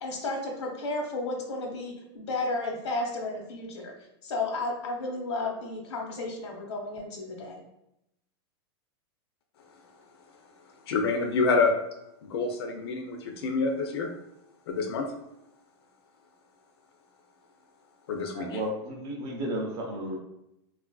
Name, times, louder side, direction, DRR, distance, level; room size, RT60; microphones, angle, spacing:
voice 1, 0.0-3.9 4.2-7.6, left 2 dB, 85° left, 1 dB, 0.9 m, -33 dB
voice 2, 10.9-11.7 12.2-14.1 14.7-15.1 18.1-18.6, left 4 dB, 65° left, 4 dB, 0.5 m, -27 dB
voice 3, 18.3-20.2, right 1 dB, 25° right, 0 dB, 0.5 m, -33 dB
3.8 x 2.4 x 2.3 m, 0.84 s
supercardioid pair, 170°, 14 cm